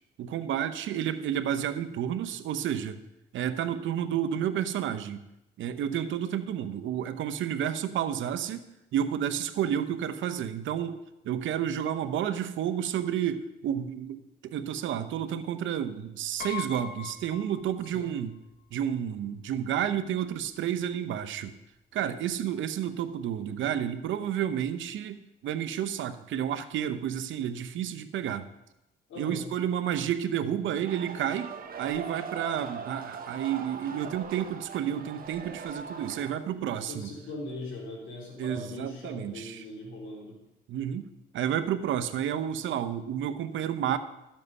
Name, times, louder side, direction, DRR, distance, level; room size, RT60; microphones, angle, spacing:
voice 1, 0.2-3.0 3.3-5.2 5.6-8.6 8.9-10.9 11.2-18.3 18.7-21.5 21.9-25.2 25.4-28.5 29.2-31.5 31.8-37.1 38.4-39.6 40.7-41.1 41.3-44.0, right 9 dB, 75° right, 11 dB, 0.8 m, -31 dB
Piano, 16.4-18.2 18.5-18.6 19.8-19.9 20.2-20.4, left 8 dB, 45° left, 1.3 m, -40 dB
voice 2, 29.1-29.4 36.8-40.4, left 2 dB, 80° left, -3 dB, 3.8 m, -40 dB
sound 1, 30.8-36.3, right 6 dB, 50° right, 1.0 m, -40 dB
12.5 x 7.5 x 5.4 m, 0.89 s
cardioid pair, 90°, 20 cm